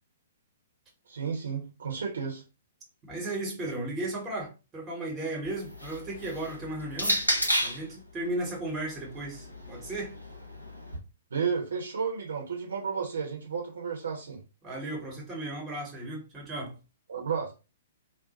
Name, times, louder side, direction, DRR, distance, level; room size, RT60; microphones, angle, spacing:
voice 1, 1.1-2.4 11.3-14.4 17.1-17.5, right 6 dB, 65° right, 0.9 m, -32 dB
voice 2, 3.1-7.2 7.6-10.1 14.6-16.8, right 1 dB, 15° right, 1.2 m, -35 dB
sound 1, 5.4-7.9 8.9-11.0, equal, 90° right, 0.7 m, -32 dB
2.6 x 2.1 x 4.0 m
figure-of-eight pair, 115°, 0 cm